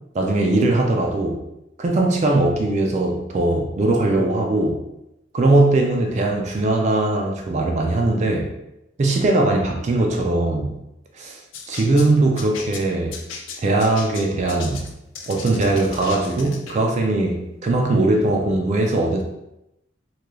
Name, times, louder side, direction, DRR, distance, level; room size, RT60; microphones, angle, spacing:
voice 1, 0.1-1.4 1.8-4.8 5.3-8.5 9.0-10.7 11.2-11.4 11.7-13.1 13.6-14.9 15.3-19.2, right 2 dB, 35° right, 1 dB, 0.3 m, -20 dB
sound 1, 11.5-16.8, left 5 dB, 90° left, 0.4 m, -37 dB
3.1 x 2.3 x 2.2 m, 0.89 s
head